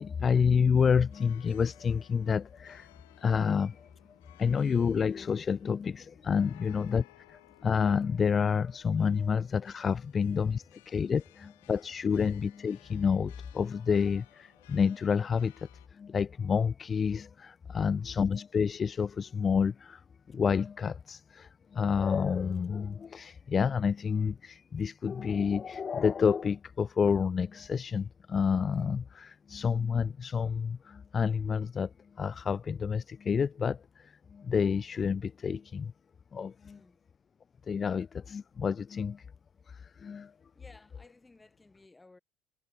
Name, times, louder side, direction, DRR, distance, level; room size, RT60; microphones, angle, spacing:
voice 1, 0.0-2.9 3.2-3.9 4.4-20.0 20.3-35.9 36.3-36.8 37.7-39.3 39.7-40.3, left 6 dB, 35° left, 0.6 m, -29 dB
sound 1, 0.7-15.9, left 20 dB, 80° left, 4.6 m, -60 dB
voice 2, 36.6-37.0 40.5-42.2, left 2 dB, 15° left, 4.5 m, -58 dB
hypercardioid pair, 70°, 0 cm